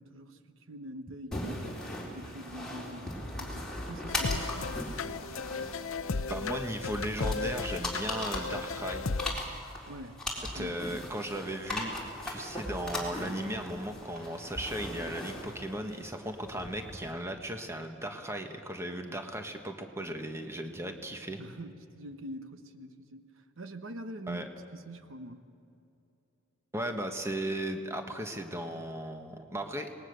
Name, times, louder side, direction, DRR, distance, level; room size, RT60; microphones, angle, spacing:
voice 1, 0.0-4.8 9.9-10.8 21.4-24.5 24.7-25.5, right 1 dB, 70° right, 9 dB, 1.1 m, -45 dB
sound 1, 1.3-17.1, left 1 dB, 5° left, 4.0 m, -39 dB
sound 2, 4.1-9.3, left 4 dB, 75° left, 0.7 m, -35 dB
voice 2, 6.3-9.1 10.5-21.4 24.3-24.5 26.7-30.0, right 1 dB, 15° right, 5 dB, 1.4 m, -36 dB
26.5 x 20.0 x 6.8 m, 2.7 s
head